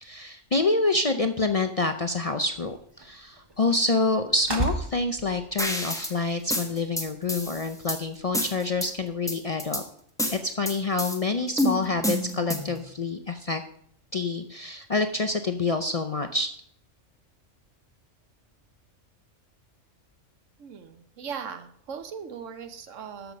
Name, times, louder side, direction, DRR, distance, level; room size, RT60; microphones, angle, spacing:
voice 1, 0.0-9.8 10.3-13.6 14.1-16.5, left 3 dB, 45° left, 6 dB, 0.5 m, -27 dB
sound 1, 2.5-9.2, right 2 dB, 20° right, 0.9 m, -38 dB
sound 2, 5.6-6.1 6.5-8.0 8.3-8.9 9.3-9.8 10.2-11.2 11.6-12.8, left 1 dB, 5° left, 1.1 m, -28 dB
voice 2, 20.6-23.3, right 7 dB, 80° right, 9 dB, 1.3 m, -39 dB
13.0 x 5.8 x 5.2 m, 0.66 s
omnidirectional pair, 1.3 m